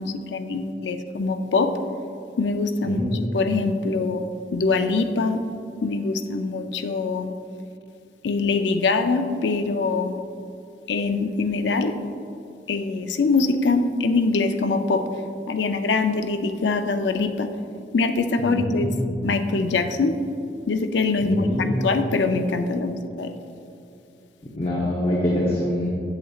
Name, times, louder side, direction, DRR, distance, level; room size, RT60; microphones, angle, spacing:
voice 1, 0.0-1.7 2.4-3.0 3.3-5.4 5.8-7.3 8.2-10.2 10.9-11.9 12.7-15.0 15.5-17.5 17.9-18.9 19.2-20.1 20.7-21.5 21.8-23.3, left 3 dB, 90° left, 8 dB, 0.5 m, -23 dB
voice 2, 2.8-3.2 18.4-19.2 21.2-21.9 24.5-26.0, left 1 dB, 35° left, -5 dB, 0.8 m, -25 dB
8.0 x 7.7 x 2.4 m, 2.7 s
head